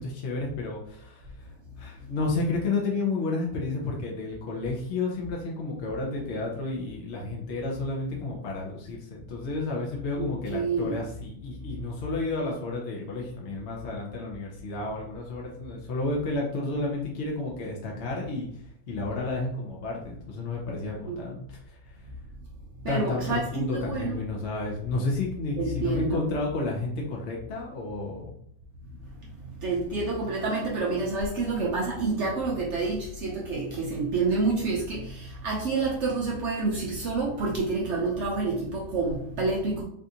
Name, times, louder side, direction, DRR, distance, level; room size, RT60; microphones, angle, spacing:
voice 1, 0.0-18.5 18.9-21.8 22.9-28.3, left 3 dB, 60° left, 0.7 m, -31 dB
voice 2, 10.2-11.0 21.0-21.2 22.8-23.4 23.7-24.2 25.6-26.2 29.6-39.8, right 3 dB, 70° right, 0.6 m, -28 dB
3.5 x 2.5 x 2.7 m
omnidirectional pair, 1.8 m